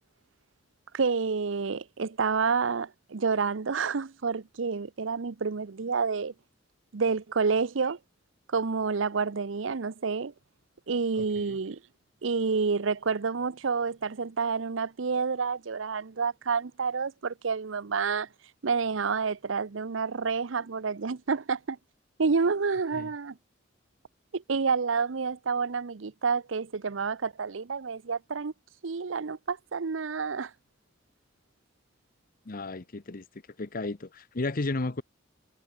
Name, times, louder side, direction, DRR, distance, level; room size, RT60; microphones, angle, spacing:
voice 1, 0.9-6.3 6.9-8.0 8.5-10.3 10.9-11.8 12.2-18.3 18.6-21.8 22.2-23.4 24.3-28.5 28.8-30.5, right 5 dB, 90° right, 0.7 m, -29 dB
voice 2, 11.2-11.6 22.9-23.1 32.5-33.2 33.6-35.0, left 2 dB, 50° left, 0.9 m, -33 dB
head